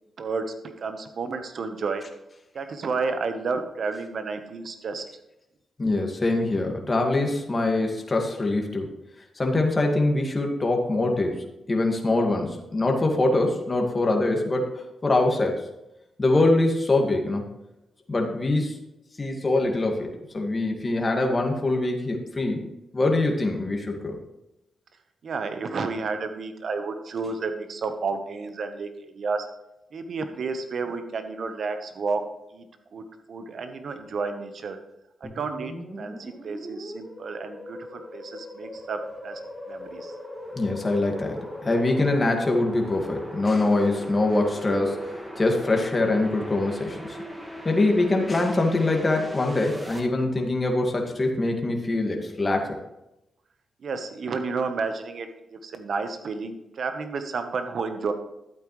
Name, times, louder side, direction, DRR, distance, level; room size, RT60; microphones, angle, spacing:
voice 1, 0.2-2.0 2.5-5.0 25.2-29.5 29.9-32.2 32.5-32.7 32.9-34.8 35.2-39.4 39.7-40.1 53.8-58.1, right 4 dB, 65° right, 7 dB, 1.1 m, -31 dB
voice 2, 5.8-8.9 9.4-15.6 16.2-17.5 18.1-18.8 19.2-24.2 40.5-47.2 47.7-52.8, left 2 dB, 30° left, 2 dB, 2.0 m, -24 dB
sound 1, 35.2-50.0, equal, 15° right, 2.1 m, -39 dB
12.0 x 8.8 x 3.2 m, 0.90 s
cardioid pair, 75°, 0 cm